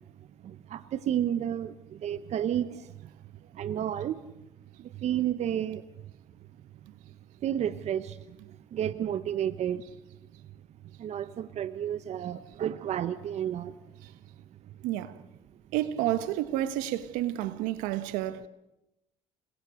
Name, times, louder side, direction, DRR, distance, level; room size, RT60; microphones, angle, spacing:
voice 1, 0.4-3.1 3.5-4.2 4.8-5.8 7.4-9.8 11.0-13.7, right 10 dB, 55° right, 1.1 m, -31 dB
voice 2, 14.8-15.2 15.7-18.5, right 13 dB, 80° right, 1.4 m, -30 dB
28.5 x 21.5 x 6.4 m
supercardioid pair, 70°, 13 cm